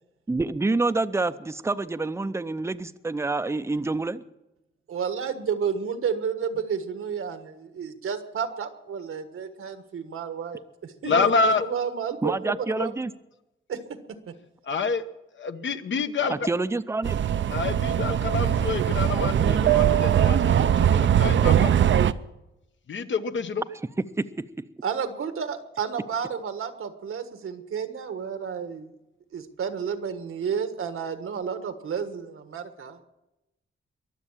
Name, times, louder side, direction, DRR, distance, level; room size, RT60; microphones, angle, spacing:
voice 1, 0.3-4.2 12.2-13.1 16.3-17.2 24.2-24.7, right 3 dB, 15° right, 13 dB, 0.5 m, -27 dB
voice 2, 4.9-12.5 13.7-13.8 24.8-28.9 29.3-33.0, right 7 dB, 85° right, 9 dB, 1.5 m, -31 dB
voice 3, 11.0-11.7 14.7-15.0 15.4-16.3 17.5-21.7 22.9-23.6, left 4 dB, 65° left, 9 dB, 1.0 m, -27 dB
sound 1, 17.0-22.1, right 9 dB, 65° right, 0.6 m, -21 dB
22.5 x 7.6 x 7.4 m, 0.95 s
wide cardioid pair, 125°, 21 cm